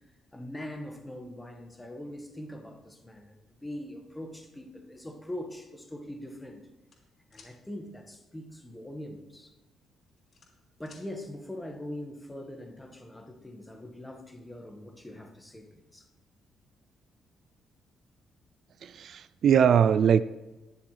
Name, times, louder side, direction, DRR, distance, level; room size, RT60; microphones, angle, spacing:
voice 1, 0.3-6.6 7.3-9.5 10.8-16.0, left 1 dB, 10° left, 3 dB, 1.6 m, -42 dB
sound 1, 6.9-7.5 9.2-9.4 9.8-11.1, left 4 dB, 50° left, 3.4 m, -56 dB
voice 2, 18.8-20.2, right 8 dB, 60° right, 16 dB, 0.3 m, -21 dB
20.5 x 6.9 x 3.3 m, 1.1 s
cardioid pair, 90°, 0 cm